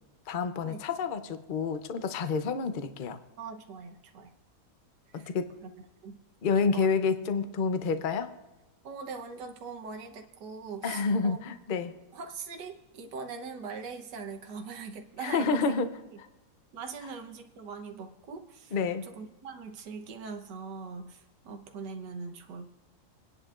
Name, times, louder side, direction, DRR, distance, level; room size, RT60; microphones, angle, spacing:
voice 1, 0.3-3.2 5.1-5.4 6.4-8.3 10.8-11.9 15.2-15.9 18.7-19.1, left 5 dB, 85° left, 9 dB, 0.4 m, -29 dB
voice 2, 3.4-4.3 5.1-5.3 5.6-6.2 6.6-7.0 8.8-11.4 12.1-15.9 16.7-18.8 19.1-22.7, right 5 dB, 70° right, 4 dB, 1.6 m, -41 dB
27.0 x 10.5 x 2.5 m, 1.1 s
omnidirectional pair, 2.0 m